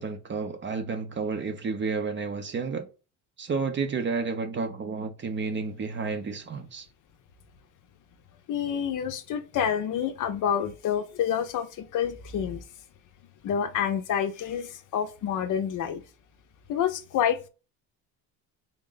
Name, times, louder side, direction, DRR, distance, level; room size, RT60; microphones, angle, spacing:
voice 1, 0.0-2.9 3.4-6.9, right 4 dB, 30° right, 0.5 m, -31 dB
voice 2, 8.5-12.6 13.4-16.0 16.7-17.5, left 8 dB, 50° left, 0.6 m, -28 dB
3.6 x 2.2 x 3.8 m
cardioid pair, 125°, 40 cm